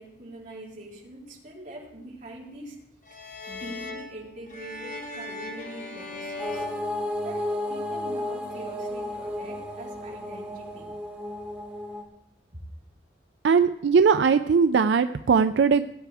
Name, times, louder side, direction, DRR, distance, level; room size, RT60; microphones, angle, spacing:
voice 1, 0.0-2.8 3.1-6.7 7.2-10.9, right 1 dB, 45° right, -4 dB, 3.5 m, -43 dB
sound 1, 3.0-7.7, left 2 dB, 45° left, 1.5 m, -39 dB
sound 2, 6.4-12.0, left 1 dB, 5° right, 1.8 m, -33 dB
voice 2, 13.4-15.8, right 5 dB, 80° right, 11 dB, 0.4 m, -20 dB
18.0 x 10.0 x 3.5 m, 0.83 s
head